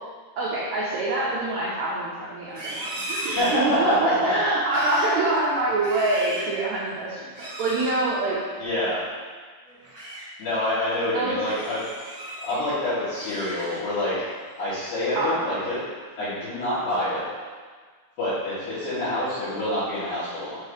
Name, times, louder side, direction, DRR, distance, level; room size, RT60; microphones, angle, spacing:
voice 1, 0.4-8.4 11.1-11.4 15.1-15.4, right 2 dB, 75° right, -7 dB, 1.7 m, -25 dB
Livestock farm animals working animals, 2.4-4.1 4.6-5.2 5.6-6.6 7.3-8.0 9.7-10.2 10.7-11.0 11.4-12.6 13.0-14.0 14.4-14.7 15.2-15.6, right 1 dB, 45° right, 0.9 m, -36 dB
voice 2, 3.3-4.4 8.6-9.0 10.4-11.8 12.4-14.3 14.6-15.8 16.2-17.2 18.2-20.6, left 1 dB, 75° left, -14 dB, 3.6 m, -26 dB
7.2 x 2.9 x 4.8 m, 1.5 s
omnidirectional pair, 4.2 m